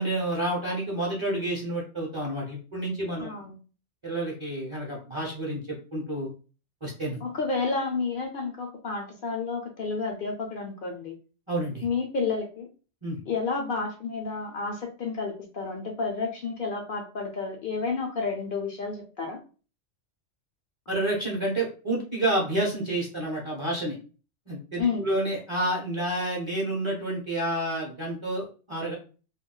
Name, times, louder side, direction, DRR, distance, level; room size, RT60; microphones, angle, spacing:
voice 1, 0.0-3.4 4.0-6.3 6.8-7.2 11.5-11.9 13.0-13.2 20.9-24.0 24.5-28.9, right 1 dB, 30° right, -3 dB, 0.7 m, -29 dB
voice 2, 3.2-3.5 7.2-11.2 11.8-12.7 13.3-19.4 24.8-25.1, left 4 dB, 60° left, 3 dB, 0.6 m, -30 dB
2.3 x 2.2 x 3.7 m, 0.37 s
omnidirectional pair, 1.2 m